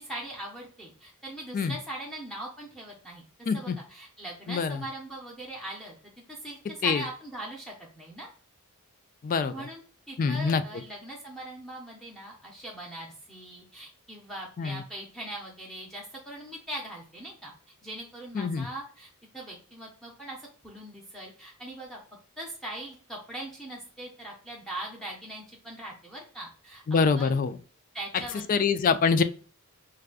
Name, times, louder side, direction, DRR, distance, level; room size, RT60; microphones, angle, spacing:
voice 1, 0.0-5.9 6.3-8.3 9.4-9.8 10.1-17.5 17.8-22.0 22.4-27.4 27.9-28.5, right 1 dB, ahead, -3 dB, 0.7 m, -41 dB
voice 2, 3.5-3.8 4.5-4.8 6.8-7.0 9.2-9.5 10.2-10.6 14.6-14.8 18.3-18.7 26.9-27.6 28.5-29.2, left 5 dB, 40° left, 12 dB, 0.3 m, -24 dB
4.8 x 2.3 x 2.4 m, 0.41 s
head